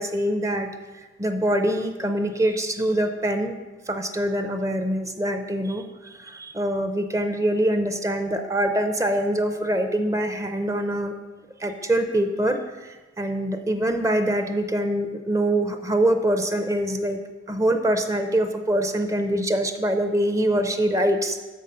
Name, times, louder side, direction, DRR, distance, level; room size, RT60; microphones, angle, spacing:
voice 1, 0.0-3.5 3.9-5.8 6.2-11.1 11.6-17.2 17.5-21.4, right 1 dB, 20° right, 7 dB, 0.5 m, -24 dB
6.8 x 5.5 x 6.6 m, 1.2 s
head